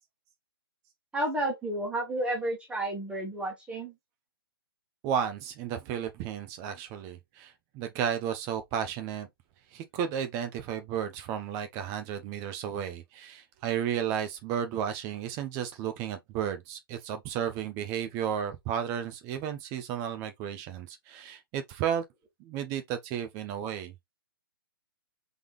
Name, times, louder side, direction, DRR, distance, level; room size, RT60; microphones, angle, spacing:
voice 1, 1.1-3.9, right 1 dB, 10° right, 1.6 m, -31 dB
voice 2, 5.0-9.3 9.7-22.0 22.4-23.9, right 8 dB, 25° right, 0.8 m, -33 dB
4.0 x 3.4 x 3.1 m
hypercardioid pair, 145°, 12 cm